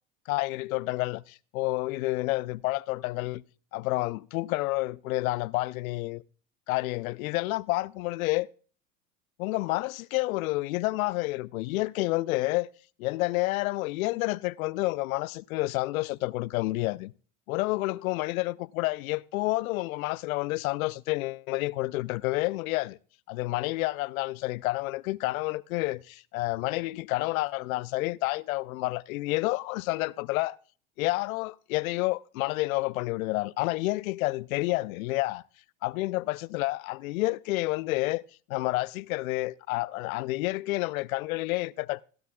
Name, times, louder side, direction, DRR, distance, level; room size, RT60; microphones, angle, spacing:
voice 1, 0.3-3.4 3.7-6.2 6.7-8.5 9.4-12.7 13.0-17.1 17.5-23.0 23.3-30.6 31.0-35.4 35.8-38.2 38.5-42.0, left 20 dB, 80° left, 0.6 m, -29 dB
16.5 x 12.0 x 2.3 m
hypercardioid pair, 95°, 41 cm